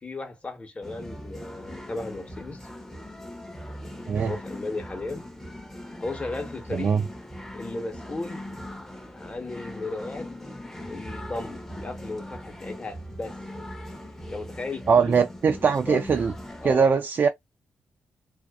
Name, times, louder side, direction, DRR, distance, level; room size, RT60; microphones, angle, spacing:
voice 1, 0.0-2.7 3.7-5.3 6.0-6.9 7.5-8.5 9.1-10.3 10.9-13.3 14.3-15.2 15.6-16.1 16.6-16.9, left 2 dB, 30° left, 1.1 m, -35 dB
sound 1, 0.8-16.7, left 1 dB, 10° left, 0.8 m, -40 dB
voice 2, 6.7-7.0 14.9-16.3 16.6-17.3, right 6 dB, 50° right, 0.4 m, -21 dB
2.5 x 2.4 x 2.3 m
cardioid pair, 65°, 4 cm